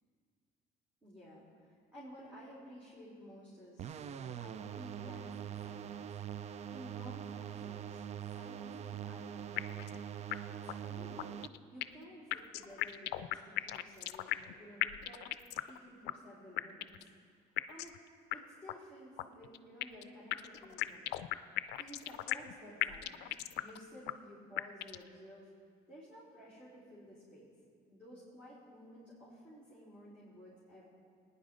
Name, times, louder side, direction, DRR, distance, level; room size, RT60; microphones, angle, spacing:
voice 1, 1.0-6.2 6.7-8.0 8.3-10.0 10.5-11.4 11.7-17.1 17.7-18.0 18.3-21.2 21.8-23.3 23.6-25.5 25.9-27.5 27.9-30.8, equal, 10° right, -9 dB, 3.7 m, -54 dB
sound 1, 3.8-11.5, right 9 dB, 40° right, 0.4 m, -43 dB
sound 2, 9.6-10.0 10.3-10.4 10.7-10.8 11.2-12.0 12.3-14.5 14.8-15.8 16.1-16.2 16.6-17.1 17.6-18.0 18.3-18.4 18.7-18.8 19.2-20.0 20.3-22.5 22.8-23.8 24.1-24.2 24.6-25.1, left 16 dB, 85° left, 0.4 m, -36 dB
20.5 x 9.8 x 3.8 m, 2.2 s
cardioid pair, 110°, 17 cm